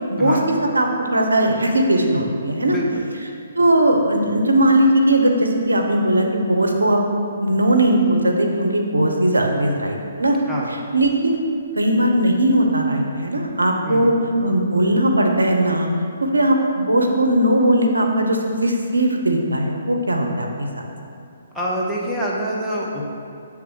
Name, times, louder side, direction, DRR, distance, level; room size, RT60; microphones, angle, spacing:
voice 1, 0.1-2.8 3.6-7.0 7.4-10.4 10.9-11.4 11.8-14.1 14.4-15.9 16.3-20.8, right 1 dB, 85° right, 2 dB, 0.7 m, -18 dB
voice 2, 2.6-3.1 10.5-10.8 13.8-14.2 21.5-23.0, equal, ahead, -6 dB, 1.0 m, -26 dB
7.3 x 3.5 x 4.8 m, 2.6 s
figure-of-eight pair, 135°, 0 cm